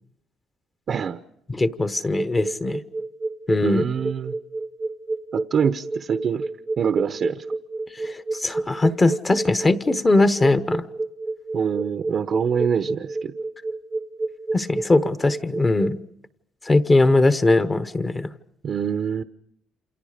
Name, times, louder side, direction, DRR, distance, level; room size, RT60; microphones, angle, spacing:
voice 1, 0.9-1.2 3.6-4.4 5.3-6.4 6.8-7.4 11.5-13.3 18.6-19.2, right 7 dB, 45° right, 9 dB, 0.9 m, -25 dB
voice 2, 1.5-2.8 3.5-3.9 8.0-10.8 14.5-16.0 16.7-18.3, left 2 dB, 20° left, 11 dB, 1.1 m, -20 dB
sound 1, 2.2-15.9, right 2 dB, 15° right, 0.9 m, -29 dB
29.0 x 27.5 x 5.1 m, 0.73 s
cardioid pair, 130°, 0 cm